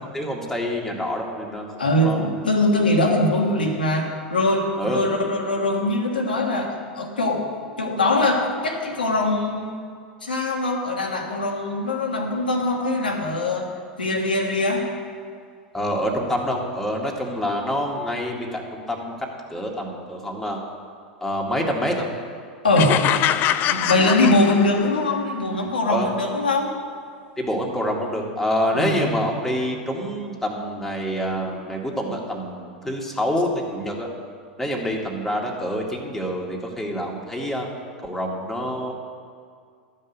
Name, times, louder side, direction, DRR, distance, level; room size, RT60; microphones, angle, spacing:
voice 1, 0.1-2.3 4.8-5.0 15.7-19.1 19.5-20.6 21.2-22.1 25.9-26.1 27.4-34.1 34.6-37.7 38.0-38.9, equal, 5° left, -1 dB, 2.0 m, -26 dB
voice 2, 1.8-7.5 7.8-9.7 10.2-13.7 14.0-14.9 22.6-23.0 23.6-26.7 28.7-29.2, left 2 dB, 90° left, 0 dB, 1.6 m, -22 dB
sound 1, 22.8-25.1, left 11 dB, 40° left, 0.5 m, -23 dB
12.0 x 5.5 x 8.1 m, 2.2 s
hypercardioid pair, 90°, 5 cm